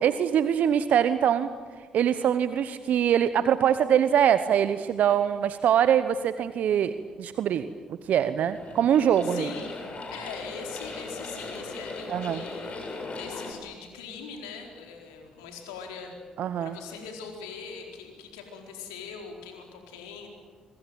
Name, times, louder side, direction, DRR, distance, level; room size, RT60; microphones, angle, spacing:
voice 1, 0.0-1.5 1.9-6.9 7.2-9.5 12.1-12.4 16.4-16.7, right 9 dB, 65° right, 12 dB, 1.0 m, -23 dB
sound 1, 8.4-13.5, left 3 dB, 45° left, 7.6 m, -38 dB
voice 2, 9.2-9.8 10.1-16.2 16.6-20.3, left 6 dB, 85° left, 2 dB, 4.4 m, -42 dB
26.0 x 25.0 x 9.1 m, 1.5 s
hypercardioid pair, 45°, 3 cm